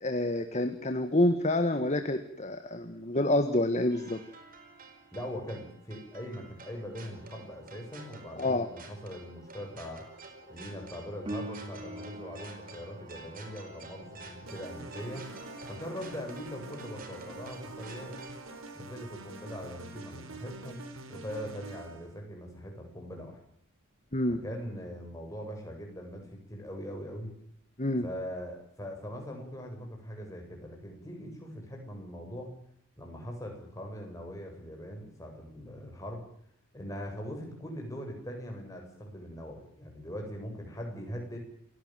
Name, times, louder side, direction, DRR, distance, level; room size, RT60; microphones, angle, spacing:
voice 1, 0.0-4.2 8.4-8.7 24.1-24.4 27.8-28.1, left 1 dB, 35° left, 8 dB, 1.6 m, -28 dB
sound 1, 3.9-18.6, right 3 dB, 45° right, 4.8 m, -50 dB
voice 2, 5.1-10.0 10.5-15.3 15.7-18.2 18.7-20.8 21.1-23.4 24.3-27.3 28.0-32.5 33.0-36.2 36.7-41.4, equal, 15° left, 1 dB, 7.9 m, -41 dB
Piano, 11.3-21.7 29.2-29.3, right 1 dB, 25° right, 2.6 m, -48 dB
sound 2, 14.5-22.1, right 2 dB, 80° right, 3.7 m, -46 dB
29.5 x 17.0 x 7.7 m, 0.66 s
head